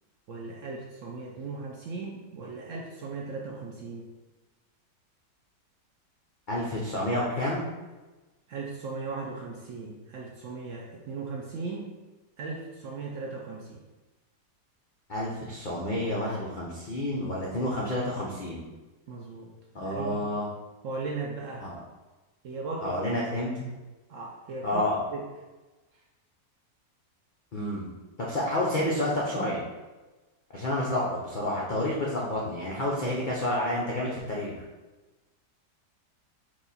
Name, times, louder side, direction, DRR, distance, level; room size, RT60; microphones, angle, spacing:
voice 1, 0.3-4.1 8.5-12.0 12.4-13.8 19.1-19.5 19.8-20.3 20.8-21.7 22.4-23.0 24.1-25.2, right 4 dB, 70° right, -1 dB, 0.7 m, -37 dB
voice 2, 6.5-7.7 15.1-18.6 19.7-20.4 21.6-21.8 22.8-23.7 24.6-25.0 27.5-27.9 28.2-29.6 30.5-34.5, left 1 dB, 75° left, -5 dB, 0.4 m, -29 dB
4.6 x 2.3 x 4.0 m, 1.2 s
omnidirectional pair, 1.8 m